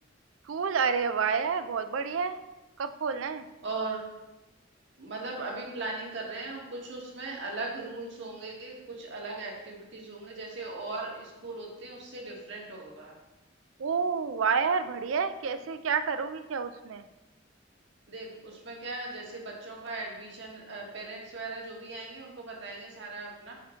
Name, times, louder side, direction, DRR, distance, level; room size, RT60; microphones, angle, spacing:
voice 1, 0.5-2.4 2.8-3.5 13.8-17.0, right 6 dB, 90° right, 11 dB, 0.4 m, -29 dB
voice 2, 3.6-4.0 5.0-13.2 18.1-23.5, right 3 dB, 65° right, -2 dB, 1.6 m, -38 dB
5.0 x 4.4 x 5.6 m, 1.0 s
head